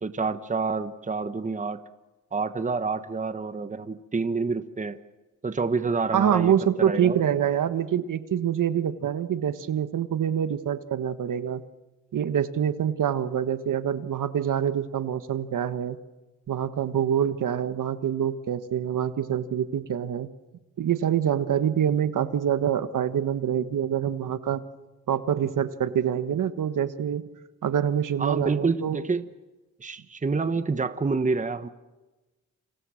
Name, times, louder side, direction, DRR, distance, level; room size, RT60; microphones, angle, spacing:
voice 1, 0.0-1.8 2.3-5.0 5.4-7.2 28.2-29.3 29.8-31.7, right 4 dB, 20° right, 11 dB, 1.2 m, -28 dB
voice 2, 6.1-11.6 12.1-16.0 16.5-20.3 20.8-24.6 25.1-27.2 27.6-29.0, right 9 dB, 70° right, 11 dB, 1.5 m, -25 dB
30.0 x 27.0 x 6.5 m, 1.2 s
cardioid pair, 95°, 33 cm